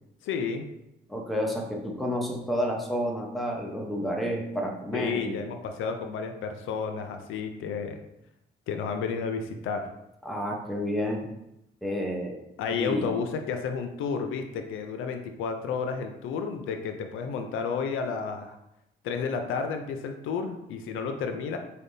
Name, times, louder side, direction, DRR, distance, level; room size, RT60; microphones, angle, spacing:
voice 1, 0.2-0.7 4.9-8.0 8.7-9.9 12.6-18.5 19.0-21.6, left 5 dB, 85° left, 6 dB, 0.5 m, -31 dB
voice 2, 1.1-5.4 10.2-11.3 11.8-12.4 12.7-13.1, equal, ahead, -1 dB, 0.8 m, -30 dB
4.3 x 3.4 x 2.6 m, 0.86 s
cardioid pair, 90°, 20 cm